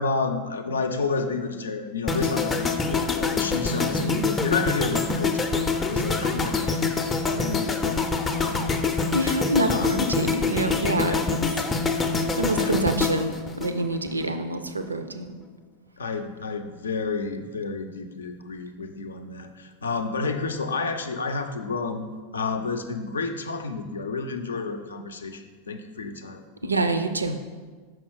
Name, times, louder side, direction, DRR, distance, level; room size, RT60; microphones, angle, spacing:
voice 1, 0.0-5.5 5.9-6.8 7.3-7.8 8.3-8.8 9.7-9.9 11.0-11.2 12.5-12.7 16.0-22.1 22.3-26.4, left 4 dB, 70° left, 7 dB, 0.5 m, -30 dB
sound 1, 2.1-14.3 14.5-14.8, left 4 dB, 15° left, 0.5 m, -25 dB
voice 2, 9.1-11.2 12.4-13.3 13.6-15.3 26.6-27.4, right 2 dB, 80° right, 9 dB, 0.4 m, -26 dB
6.0 x 4.4 x 3.9 m, 1.4 s
figure-of-eight pair, 90°, 0 cm